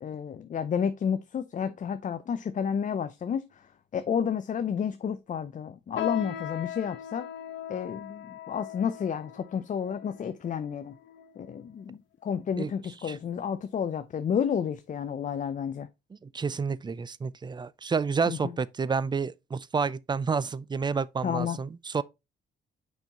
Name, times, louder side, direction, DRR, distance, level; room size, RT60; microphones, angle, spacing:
voice 1, 0.0-3.7 3.9-7.3 7.7-11.0 11.4-15.9 18.3-18.5 21.2-21.6, left 7 dB, 40° left, 0.5 m, -31 dB
sound 1, 6.0-11.6 12.3-12.4 13.2-13.5 13.9-14.0 14.7-14.8, left 11 dB, 75° left, 1.3 m, -39 dB
voice 2, 16.2-22.0, right 5 dB, 20° right, 0.4 m, -29 dB
6.2 x 5.3 x 2.9 m
cardioid pair, 90°, 20 cm